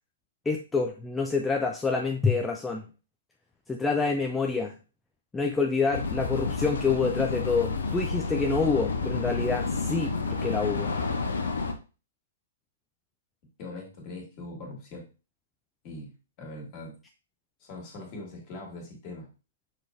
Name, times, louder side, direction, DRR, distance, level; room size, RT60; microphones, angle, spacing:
voice 1, 0.5-2.8 3.7-4.7 5.3-10.9, left 4 dB, 10° left, 2 dB, 0.4 m, -27 dB
sound 1, 5.9-11.7, left 4 dB, 70° left, 0.8 m, -30 dB
voice 2, 13.6-15.1 15.8-16.1 16.4-17.0 17.6-19.3, left 2 dB, 35° left, 0 dB, 1.8 m, -41 dB
5.8 x 3.0 x 2.5 m, 0.33 s
figure-of-eight pair, 125°, 0 cm